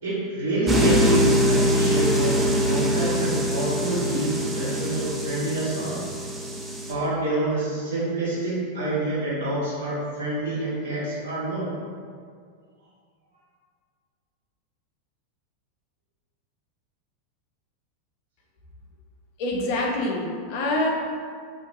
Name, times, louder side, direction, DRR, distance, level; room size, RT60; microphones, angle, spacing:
voice 1, 0.0-2.4 2.6-6.0 6.9-11.7, right 1 dB, 65° right, -9 dB, 1.4 m, -27 dB
sound 1, 0.7-6.9, equal, 10° right, 0.4 m, -23 dB
voice 2, 19.4-20.9, left 1 dB, 50° left, -1 dB, 0.6 m, -25 dB
2.7 x 2.6 x 3.8 m, 2.1 s
figure-of-eight pair, 90°, 0 cm